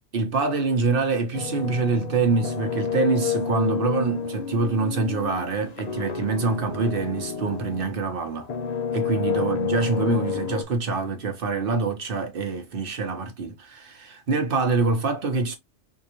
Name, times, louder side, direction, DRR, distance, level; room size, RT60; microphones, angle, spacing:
voice 1, 0.1-8.5 8.9-15.6, right 4 dB, 50° right, 1.0 m, -25 dB
sound 1, 1.3-8.0 8.4-10.6, left 6 dB, 50° left, 0.5 m, -29 dB
3.8 x 2.7 x 2.9 m
omnidirectional pair, 1.3 m